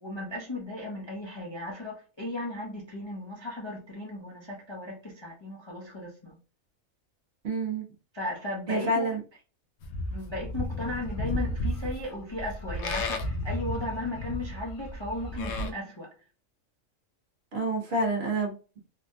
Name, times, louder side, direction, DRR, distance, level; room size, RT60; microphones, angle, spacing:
voice 1, 0.0-6.4 8.1-9.1 10.1-16.1, left 1 dB, 30° left, 0.5 m, -36 dB
voice 2, 7.4-7.8 8.7-9.2 17.5-18.8, right 2 dB, 55° right, 1.0 m, -28 dB
Livestock farm animals working animals, 9.8-15.7, left 1 dB, 65° left, 0.8 m, -33 dB
3.3 x 2.2 x 2.6 m
omnidirectional pair, 1.4 m